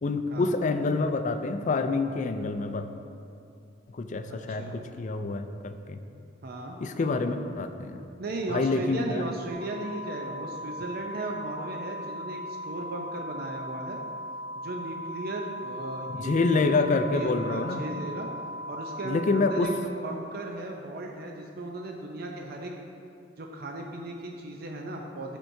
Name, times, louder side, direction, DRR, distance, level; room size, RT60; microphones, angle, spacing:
voice 1, 0.0-2.9 3.9-6.0 6.8-8.1 8.5-9.2 16.2-17.8 19.0-19.7, left 3 dB, 40° left, 8 dB, 0.4 m, -27 dB
voice 2, 4.3-4.8 6.4-6.8 8.2-14.0 14.6-16.7 17.1-18.3 18.7-19.7 20.0-22.7 23.4-25.4, right 2 dB, 55° right, 1 dB, 0.5 m, -36 dB
sound 1, 9.5-19.6, equal, 75° right, 1.6 m, -38 dB
12.0 x 4.5 x 2.7 m, 2.7 s
head